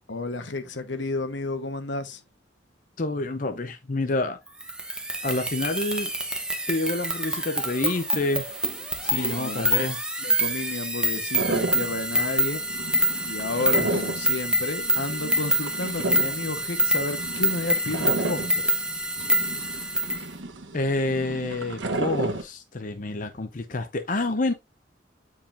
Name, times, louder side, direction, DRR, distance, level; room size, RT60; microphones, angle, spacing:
voice 1, 0.1-2.2 9.0-9.7 10.2-12.6 13.2-18.8, left 2 dB, 75° left, 1.1 m, -32 dB
voice 2, 3.0-4.4 5.2-6.1 6.7-8.5 9.1-10.0 13.8-13.9 20.7-24.5, left 2 dB, 45° left, 0.7 m, -28 dB
sound 1, 4.6-20.2, equal, 5° right, 0.9 m, -26 dB
sound 2, 11.4-22.4, right 2 dB, 90° right, 1.1 m, -33 dB
8.9 x 4.8 x 2.5 m
head